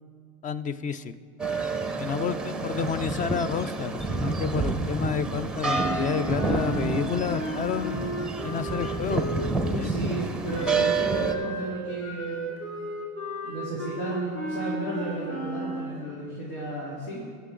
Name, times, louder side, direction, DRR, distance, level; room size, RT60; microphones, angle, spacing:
voice 1, 0.4-1.2 2.0-8.1 8.4-9.3 9.8-9.9, left 6 dB, 20° left, 14 dB, 0.3 m, -30 dB
sound 1, 1.4-11.3, right 3 dB, ahead, 0.7 m, -29 dB
Wind instrument woodwind instrument, 5.6-9.8 10.5-15.9, right 2 dB, 40° left, 3.2 m, -34 dB
voice 2, 9.7-12.5 13.4-17.3, right 2 dB, 85° left, -7 dB, 3.3 m, -33 dB
20.5 x 6.9 x 3.7 m, 2.3 s
supercardioid pair, 110°, 41 cm